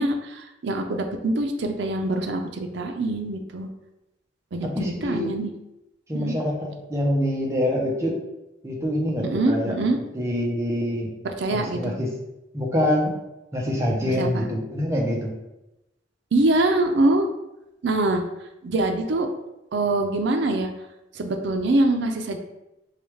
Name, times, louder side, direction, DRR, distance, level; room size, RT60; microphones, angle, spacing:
voice 1, 0.0-3.7 4.5-5.5 6.1-6.3 9.2-10.0 11.4-11.9 14.0-14.4 16.3-17.3 17.8-18.2 18.6-19.3 19.7-20.7 21.2-22.4, right 2 dB, 70° right, 5 dB, 0.5 m, -24 dB
voice 2, 4.6-5.4 6.1-8.2 8.6-9.8 10.1-11.1 11.5-12.1 12.5-13.2 13.5-15.3, left 1 dB, 15° right, -2 dB, 0.7 m, -25 dB
4.8 x 2.3 x 3.1 m, 0.93 s
head